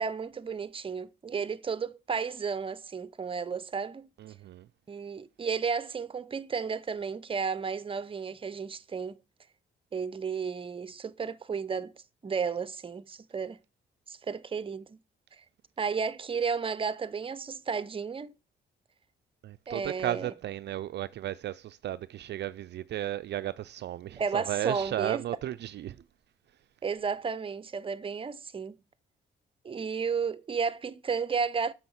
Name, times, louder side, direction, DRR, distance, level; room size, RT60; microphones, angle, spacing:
voice 1, 0.0-4.1 4.9-9.2 9.9-11.9 12.2-13.6 14.1-15.0 15.8-18.3 19.7-20.3 24.2-25.2 26.8-28.8 29.6-31.7, right 5 dB, 25° right, 0.7 m, -33 dB
voice 2, 4.2-4.7 19.4-26.0, right 12 dB, 60° right, 0.4 m, -34 dB
7.6 x 6.3 x 7.1 m
cardioid pair, 90°, 20 cm